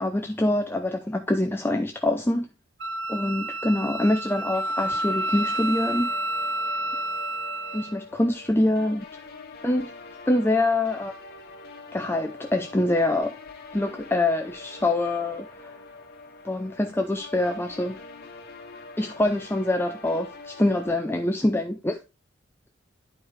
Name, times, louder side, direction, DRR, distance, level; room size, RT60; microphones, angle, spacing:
voice 1, 0.0-2.5 3.1-6.1 7.7-9.1 9.6-9.9 10.3-11.2 11.9-13.4 13.7-15.7 16.4-18.0 19.0-22.0, left 1 dB, 10° left, 0.5 m, -25 dB
Wind instrument woodwind instrument, 2.8-7.9, right 1 dB, 60° right, 0.9 m, -29 dB
sound 1, 4.5-20.9, left 3 dB, 55° left, 1.3 m, -44 dB
11.0 x 4.8 x 3.2 m
head